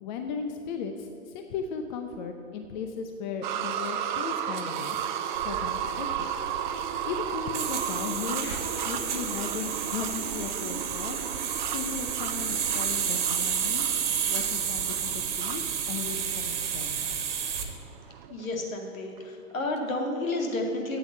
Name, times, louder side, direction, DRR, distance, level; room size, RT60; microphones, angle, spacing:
voice 1, 0.0-5.1 5.4-6.3 7.0-8.5 8.8-13.9 14.3-17.2, left 6 dB, 35° left, 5 dB, 0.7 m, -36 dB
sound 1, 3.4-18.5 19.2-19.3 19.8-19.9, right 9 dB, 35° right, 0.6 m, -35 dB
sound 2, 5.4-17.7, right 7 dB, 55° right, 1.6 m, -31 dB
voice 2, 18.3-21.0, left 2 dB, 65° left, 2 dB, 2.2 m, -31 dB
8.8 x 8.0 x 7.8 m, 2.7 s
figure-of-eight pair, 120°, 43 cm